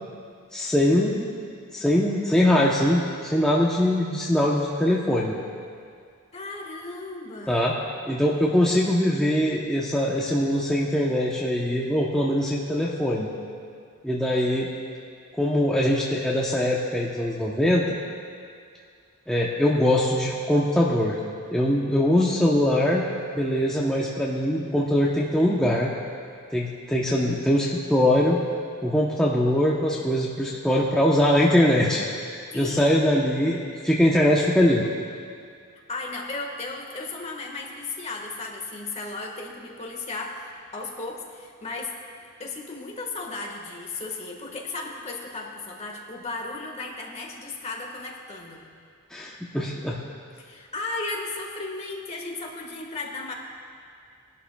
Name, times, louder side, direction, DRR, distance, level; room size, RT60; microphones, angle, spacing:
voice 1, 0.5-1.3 1.7-5.3 7.5-7.8 8.1-13.3 14.0-14.7 15.4-18.0 19.3-21.2 21.5-23.0 23.3-25.9 26.5-28.4 28.8-32.1 32.3-34.8 49.1-50.0, left 1 dB, 5° left, -5 dB, 0.7 m, -22 dB
voice 2, 6.3-7.8 32.5-32.8 35.9-41.9 42.4-48.6 50.3-53.3, left 3 dB, 30° left, 0 dB, 1.5 m, -35 dB
20.5 x 11.5 x 2.3 m, 2.2 s
head